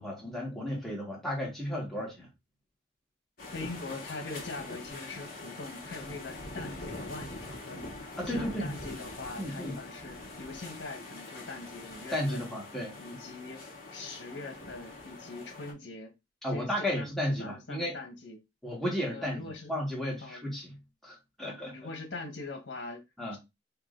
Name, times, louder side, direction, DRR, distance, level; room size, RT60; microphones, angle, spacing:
voice 1, 0.0-2.3 8.2-8.7 9.4-9.7 12.1-13.0 16.4-17.9 18.6-20.7 21.0-21.7 23.2-23.4, equal, ahead, 1.6 m, -33 dB
sound 1, 3.4-15.7, left 2 dB, 50° left, 1.6 m, -43 dB
voice 2, 3.5-7.9 8.2-12.5 13.0-13.6 13.9-16.1 16.5-18.4 19.1-19.7 20.2-20.5 21.7-23.0 23.3-23.4, left 3 dB, 80° left, 1.3 m, -42 dB
4.8 x 2.8 x 2.5 m
head